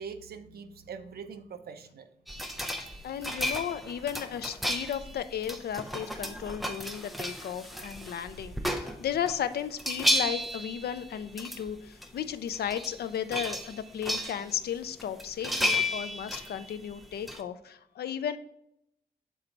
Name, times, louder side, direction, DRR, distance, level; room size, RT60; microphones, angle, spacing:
voice 1, 0.0-2.1, right 6 dB, 75° right, 9 dB, 0.6 m, -43 dB
sound 1, 2.3-9.4 9.7-11.7 12.0-12.1 12.5-13.0 13.3-14.6 15.0-17.4, left 1 dB, ahead, 0.5 m, -33 dB
voice 2, 3.0-18.4, left 9 dB, 80° left, 11 dB, 0.4 m, -35 dB
7.3 x 3.9 x 4.4 m, 0.77 s
wide cardioid pair, 175°, 16 cm